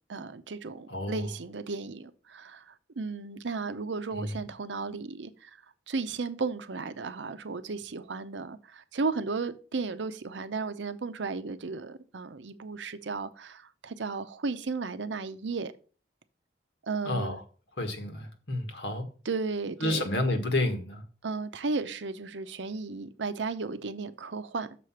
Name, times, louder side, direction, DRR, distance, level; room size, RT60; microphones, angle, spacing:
voice 1, 0.1-5.5 5.9-15.7 16.8-17.4 19.3-20.1 21.2-24.8, right 4 dB, 85° right, 0.7 m, -34 dB
voice 2, 0.9-1.3 4.1-4.4 17.0-17.4 17.8-19.1 19.8-21.0, left 1 dB, 75° left, 1.7 m, -30 dB
6.9 x 5.0 x 5.6 m
head